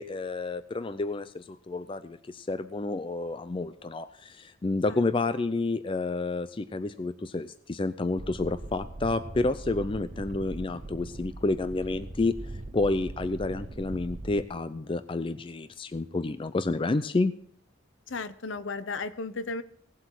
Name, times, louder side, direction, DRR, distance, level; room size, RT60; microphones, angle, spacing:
voice 1, 0.0-12.4 12.7-17.3, left 3 dB, 25° left, 13 dB, 0.4 m, -30 dB
sound 1, 8.1-14.4, right 2 dB, 35° right, 0.6 m, -40 dB
voice 2, 18.1-19.6, left 3 dB, 80° left, 13 dB, 0.7 m, -34 dB
17.5 x 7.8 x 4.5 m, 0.62 s
head